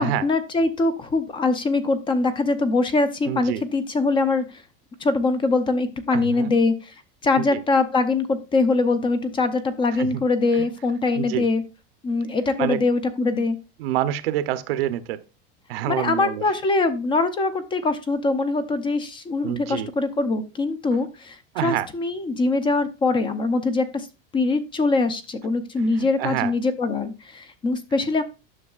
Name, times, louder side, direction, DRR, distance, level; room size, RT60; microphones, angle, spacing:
voice 1, 0.0-4.6 5.0-6.9 7.2-11.6 12.0-13.6 15.9-24.1 24.3-28.2, left 3 dB, 15° left, 0.5 m, -23 dB
voice 2, 3.3-3.6 6.1-6.5 7.4-7.6 9.9-10.2 10.5-10.7 11.1-11.5 12.6-12.8 13.8-15.2 15.7-16.4 19.4-19.9 21.5-21.9 25.8-26.5, right 12 dB, 85° right, 0.8 m, -27 dB
9.8 x 6.3 x 2.4 m
supercardioid pair, 155°, 29 cm